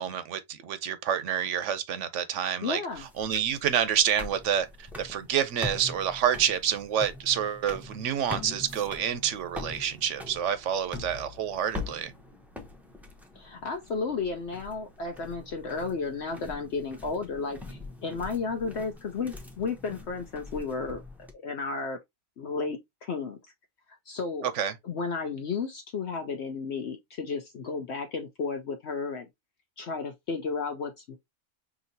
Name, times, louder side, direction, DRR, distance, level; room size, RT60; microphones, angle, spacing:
voice 1, 0.0-2.8 3.2-12.1 24.4-24.7, right 9 dB, 70° right, 1.0 m, -28 dB
voice 2, 2.6-3.1 13.3-21.0 21.4-22.0 22.4-23.4 24.1-24.5 24.8-29.3 29.8-31.2, left 4 dB, 60° left, 0.9 m, -33 dB
sound 1, 2.9-21.3, left 2 dB, ahead, 0.5 m, -43 dB
6.0 x 2.8 x 2.7 m
omnidirectional pair, 1.4 m